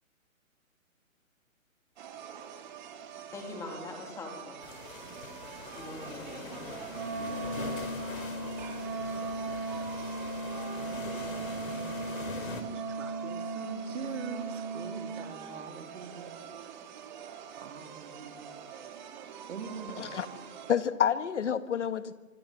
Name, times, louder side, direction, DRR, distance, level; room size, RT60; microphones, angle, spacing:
sound 1, 2.0-20.8, right 8 dB, 35° right, 2.5 m, -46 dB
voice 1, 3.2-4.6 5.7-6.7, left 2 dB, 5° left, 2 dB, 3.0 m, -43 dB
sound 2, 4.6-12.6, left 3 dB, 75° left, 5.1 m, -43 dB
Wind instrument woodwind instrument, 6.9-15.3, right 2 dB, 15° right, 0.9 m, -37 dB
voice 2, 11.9-16.6 17.6-18.6 19.5-20.2, right 6 dB, 60° right, 5 dB, 3.1 m, -44 dB
voice 3, 20.7-22.1, left 8 dB, 55° left, 11 dB, 1.7 m, -28 dB
25.5 x 22.5 x 7.6 m, 1.2 s
hypercardioid pair, 165°, 42 cm